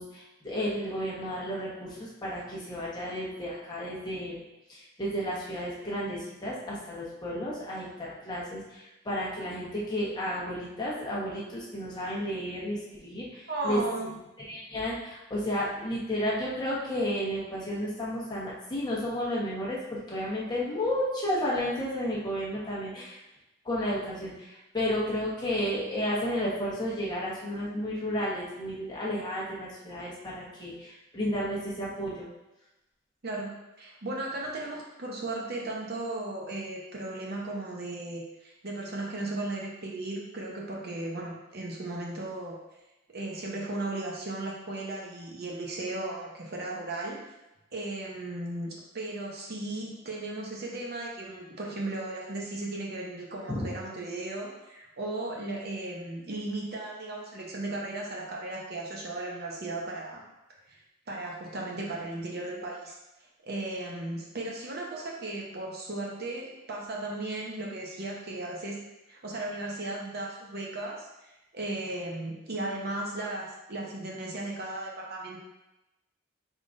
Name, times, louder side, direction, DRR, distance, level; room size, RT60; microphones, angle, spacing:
voice 1, 0.0-13.8 14.4-23.2 23.6-32.3 53.5-53.7, equal, 20° left, -6 dB, 1.0 m, -32 dB
voice 2, 13.5-14.1 33.2-42.6 43.1-47.2 47.7-48.7 48.9-60.2 60.7-60.8 61.1-63.0 63.4-68.8 69.1-75.4, right 2 dB, 50° right, -2 dB, 0.8 m, -36 dB
4.9 x 3.7 x 2.5 m, 0.97 s
head